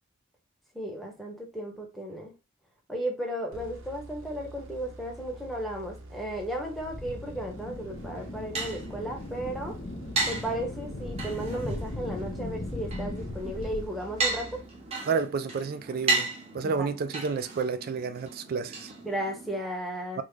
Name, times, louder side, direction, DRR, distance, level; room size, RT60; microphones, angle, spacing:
voice 1, 0.7-2.3 2.9-9.8 10.3-14.6 16.6-16.9 19.0-20.2, right 1 dB, ahead, 0.9 m, -35 dB
sound 1, 3.5-15.2, right 1 dB, 75° right, 0.7 m, -47 dB
sound 2, 6.7-13.9, left 2 dB, 40° left, 0.5 m, -38 dB
sound 3, 7.9-19.6, right 3 dB, 30° right, 0.9 m, -35 dB
voice 2, 15.0-16.3 16.5-18.9 20.2-20.3, right 5 dB, 50° right, 0.3 m, -30 dB
3.7 x 2.0 x 3.1 m
head